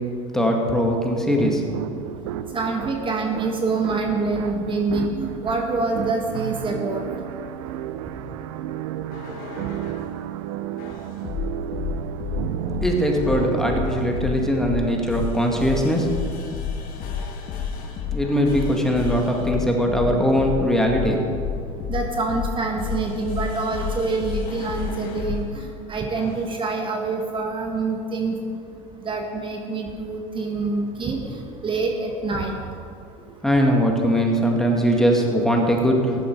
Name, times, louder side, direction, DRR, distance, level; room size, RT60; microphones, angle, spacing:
voice 1, 0.3-1.6 12.8-16.1 18.1-21.2 33.4-36.3, equal, 5° left, 0 dB, 2.1 m, -21 dB
sound 1, 1.4-15.0, right 11 dB, 75° right, 0.6 m, -32 dB
voice 2, 2.5-7.0 21.9-28.4 29.1-32.5, right 3 dB, 30° right, 2 dB, 1.8 m, -26 dB
sound 2, 9.1-10.1 10.8-25.5 26.1-26.5, left 7 dB, 60° left, 1.9 m, -30 dB
14.0 x 11.0 x 4.7 m, 2.4 s
hypercardioid pair, 85°, 16 cm